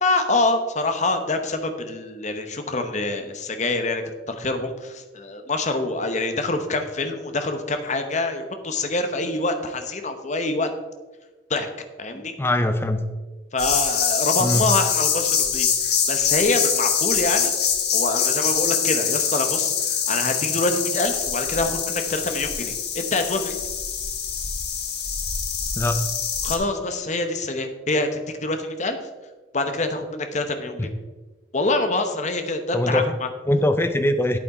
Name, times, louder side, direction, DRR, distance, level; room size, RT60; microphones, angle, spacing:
voice 1, 0.0-10.7 11.5-11.7 12.0-12.3 13.5-17.5 17.9-23.5 26.4-29.0 29.5-30.9 31.5-33.3, left 2 dB, 40° left, 6 dB, 1.0 m, -25 dB
voice 2, 12.4-13.0 14.4-14.7 25.8-26.0 30.8-30.9 32.7-33.1 33.5-34.4, left 1 dB, 15° left, 9 dB, 0.4 m, -21 dB
sound 1, 13.6-26.6, left 7 dB, 60° left, 1.4 m, -24 dB
8.5 x 8.4 x 4.2 m, 1.3 s
head